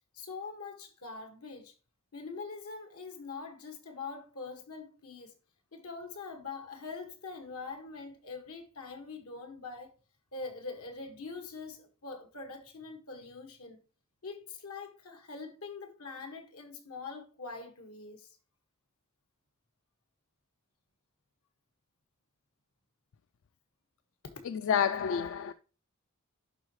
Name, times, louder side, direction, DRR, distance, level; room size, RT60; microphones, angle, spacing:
voice 1, 0.1-1.7 2.1-5.4 5.7-9.9 10.3-13.8 14.2-18.4, left 4 dB, 85° left, 1.7 m, -43 dB
voice 2, 24.5-25.5, left 7 dB, 60° left, 0.3 m, -29 dB
11.0 x 4.0 x 3.1 m
head